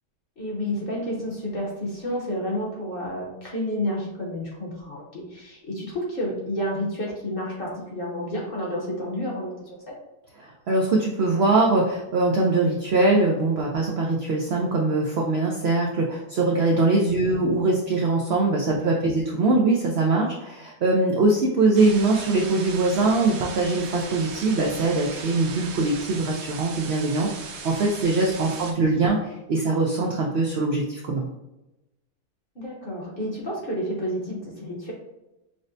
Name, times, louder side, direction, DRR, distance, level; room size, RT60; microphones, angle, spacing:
voice 1, 0.4-10.0 17.3-17.5 18.7-19.2 32.5-34.9, equal, 40° left, -3 dB, 0.9 m, -30 dB
voice 2, 10.4-27.3 27.6-31.3, right 2 dB, 85° right, -1 dB, 0.5 m, -22 dB
sound 1, 21.7-28.7, right 5 dB, 65° right, 1.0 m, -38 dB
6.2 x 2.1 x 2.6 m, 0.96 s
omnidirectional pair, 1.7 m